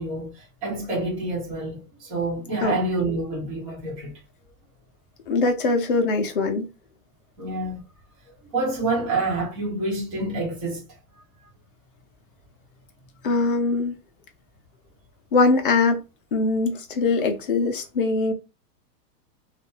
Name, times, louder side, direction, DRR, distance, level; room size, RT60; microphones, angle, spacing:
voice 1, 0.0-4.2 7.4-7.8 8.3-10.8 11.4-11.5, right 2 dB, 20° right, 1.1 m, -28 dB
voice 2, 5.3-6.7 13.2-14.0 15.3-16.0 16.3-18.3, left 3 dB, 35° left, 0.5 m, -22 dB
2.7 x 2.4 x 3.8 m
supercardioid pair, 180°, 49 cm